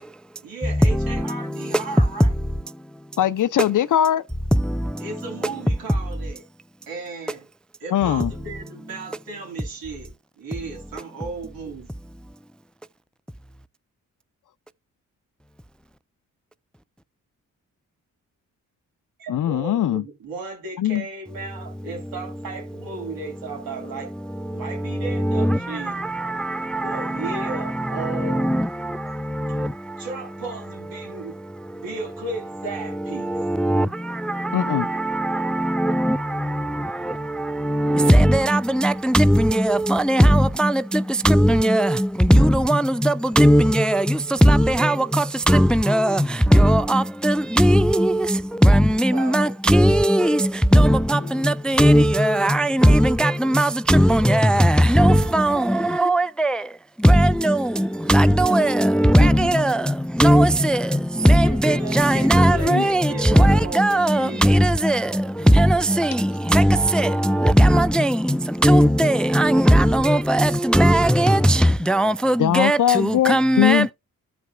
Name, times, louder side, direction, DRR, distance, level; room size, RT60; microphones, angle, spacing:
voice 1, 0.4-2.3 5.0-6.4 6.9-7.5 7.8-11.9 19.2-24.1 24.5-26.1 26.8-28.7 30.0-31.4 31.7-33.3 49.1-49.5 61.2-64.5, right 3 dB, 85° right, 3.3 m, -35 dB
voice 2, 3.2-4.2 7.9-8.3 19.3-20.0 20.8-21.0 34.5-34.9 51.2-51.5 51.8-52.0 59.2-59.3 62.7-62.8 72.4-73.9, left 11 dB, 60° left, 0.7 m, -21 dB
voice 3, 38.0-39.2 39.7-39.8 40.1-40.7 41.3-41.9 42.7-42.8 43.4-43.6 44.8-44.9 45.5-45.6 45.9-46.1 46.6-48.1 49.3-50.3 51.8-52.5 53.2-53.3 53.6-54.6 55.0-55.6 56.0-56.5 57.2-57.5 58.1-58.7 59.2-59.6 60.2-60.5 61.4-62.9 63.8-64.5 64.8-64.9 65.6-65.7 66.5-66.6 67.7-68.1 68.6-69.6 70.1-71.4 71.9-72.8 73.3-73.8, right 1 dB, 5° left, 0.4 m, -17 dB
14.5 x 5.1 x 2.3 m
supercardioid pair, 50°, 34 cm